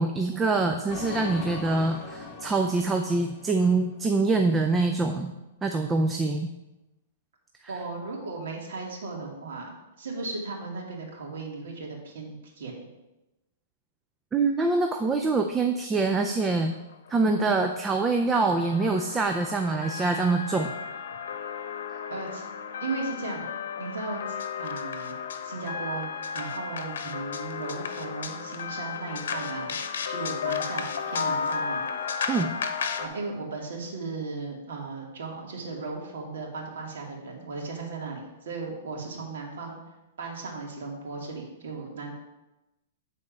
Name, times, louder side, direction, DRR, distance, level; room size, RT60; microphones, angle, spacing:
voice 1, 0.0-5.3 5.6-6.5 14.3-16.7 17.1-20.7 32.3-32.5, right 3 dB, 10° right, 5 dB, 0.4 m, -25 dB
sound 1, 0.9-4.3, left 5 dB, 25° left, 0.9 m, -40 dB
voice 2, 7.7-9.7 10.0-12.9 17.2-17.4 22.1-22.4 22.8-23.5 23.8-26.1 26.3-29.8 30.1-31.8 33.0-39.8 40.2-42.1, right 3 dB, 75° right, -1 dB, 2.3 m, -36 dB
sound 2, 16.5-16.6 16.9-17.1 17.4-33.1, left 6 dB, 85° left, 0.9 m, -33 dB
9.0 x 4.2 x 5.3 m, 0.98 s
hypercardioid pair, 165°, 0 cm